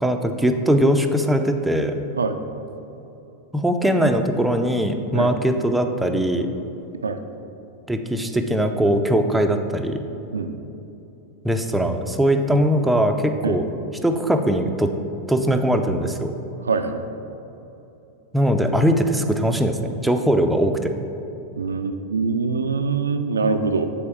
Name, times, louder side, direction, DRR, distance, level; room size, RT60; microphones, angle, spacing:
voice 1, 0.0-1.9 3.5-6.5 7.9-10.0 11.4-13.6 14.0-14.9 15.3-16.3 18.3-20.9, equal, 5° right, 5 dB, 0.5 m, -20 dB
voice 2, 16.6-17.0 21.6-23.9, right 4 dB, 85° right, 8 dB, 0.3 m, -23 dB
7.5 x 3.5 x 4.7 m, 2.9 s
hypercardioid pair, 95°, 0 cm